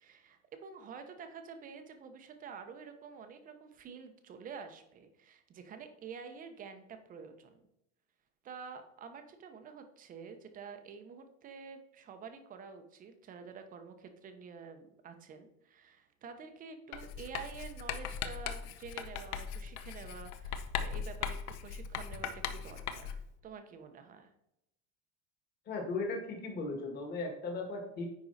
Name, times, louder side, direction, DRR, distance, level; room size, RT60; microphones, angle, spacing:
voice 1, 0.0-7.7 8.4-24.3, right 5 dB, 20° right, 7 dB, 0.8 m, -49 dB
Writing, 16.9-23.3, left 7 dB, 65° left, 0.9 m, -39 dB
voice 2, 25.7-28.1, left 3 dB, 25° left, 2 dB, 1.8 m, -37 dB
9.9 x 4.7 x 4.0 m, 0.83 s
supercardioid pair, 165°, 38 cm